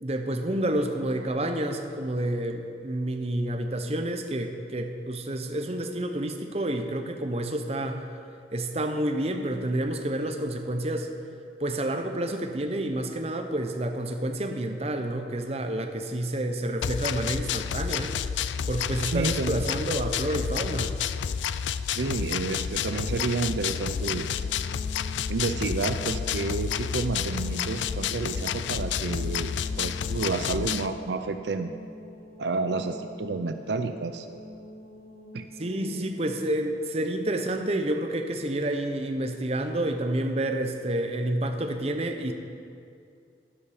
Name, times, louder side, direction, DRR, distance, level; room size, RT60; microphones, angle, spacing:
voice 1, 0.0-8.0 8.5-11.1 11.6-18.1 18.7-20.9 35.6-42.3, right 1 dB, 35° right, 5 dB, 0.8 m, -29 dB
sound 1, 16.8-30.9, left 7 dB, 85° left, 0.4 m, -30 dB
voice 2, 19.1-19.6 21.9-24.3 25.3-31.7 32.4-34.3 35.3-35.4, right 3 dB, 75° right, 8 dB, 0.5 m, -30 dB
sound 2, 24.0-36.3, left 1 dB, 55° left, 0.9 m, -45 dB
12.5 x 11.0 x 5.0 m, 2.4 s
head